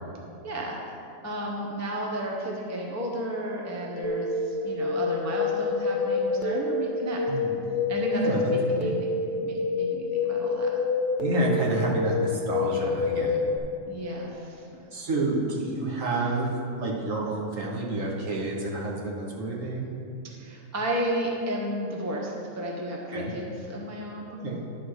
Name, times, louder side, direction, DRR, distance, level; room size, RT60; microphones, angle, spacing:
voice 1, 0.4-0.9 1.2-7.2 7.9-8.2 8.5-9.1 9.4-10.7 13.9-14.6 20.2-24.3, equal, 15° right, -2 dB, 0.8 m, -33 dB
sound 1, 4.0-13.6, left 4 dB, 45° left, 0.7 m, -27 dB
voice 2, 7.3-7.6 8.1-8.9 11.2-13.5 14.9-19.9 23.1-23.3 24.3-24.6, right 2 dB, 60° right, -3 dB, 1.5 m, -29 dB
10.5 x 4.2 x 6.4 m, 2.7 s
omnidirectional pair, 1.6 m